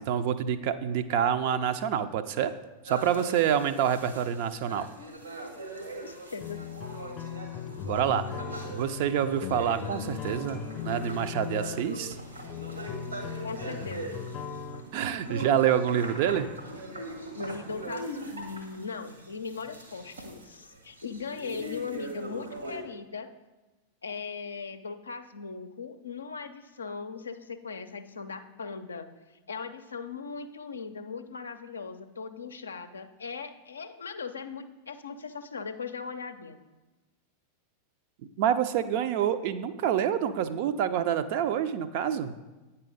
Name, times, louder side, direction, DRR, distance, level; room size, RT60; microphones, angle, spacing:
voice 1, 0.0-2.5 2.8-4.9 7.8-8.4 8.7-12.2 14.9-16.5 38.4-42.3, right 9 dB, 50° right, 11 dB, 0.4 m, -27 dB
sound 1, 2.9-22.8, right 1 dB, 80° right, 1.3 m, -41 dB
voice 2, 6.0-6.6 13.4-14.1 17.3-23.3 24.0-29.1 29.5-36.6, left 5 dB, 70° left, 9 dB, 0.5 m, -39 dB
sound 2, 6.4-14.8, left 7 dB, 35° left, 0.7 m, -38 dB
8.8 x 5.6 x 3.9 m, 1.1 s
figure-of-eight pair, 90°, 0 cm